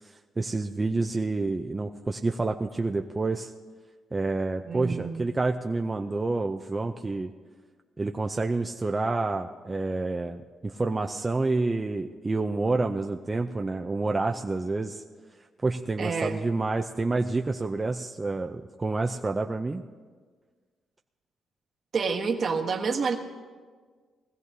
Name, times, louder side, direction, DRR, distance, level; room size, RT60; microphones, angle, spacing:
voice 1, 0.0-3.5 4.1-7.3 8.0-15.0 15.6-19.8, right 3 dB, 25° right, 4 dB, 0.5 m, -28 dB
voice 2, 4.6-5.3 16.0-16.4 21.9-23.2, right 5 dB, 50° right, 2 dB, 1.4 m, -28 dB
20.5 x 15.0 x 2.7 m, 1.5 s
cardioid pair, 90°, 0 cm